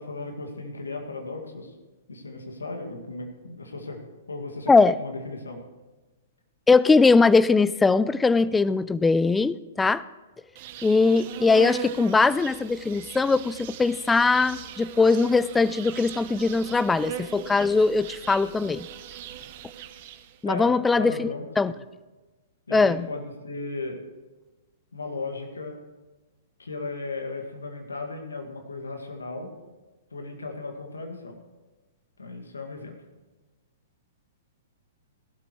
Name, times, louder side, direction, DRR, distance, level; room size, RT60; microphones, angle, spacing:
voice 1, 0.0-1.7 2.1-4.0 4.3-5.6 20.5-21.8 22.7-24.0 24.9-25.8 26.6-29.5 30.1-31.4 32.2-33.0, left 3 dB, 85° left, 3 dB, 2.1 m, -36 dB
voice 2, 6.7-10.0 10.8-18.9 20.4-21.7 22.7-23.1, left 4 dB, 10° left, 18 dB, 0.4 m, -21 dB
Insect, 10.6-20.4, right 9 dB, 50° right, 1.0 m, -39 dB
18.0 x 12.5 x 3.2 m, 1.2 s
hypercardioid pair, 115°, 0 cm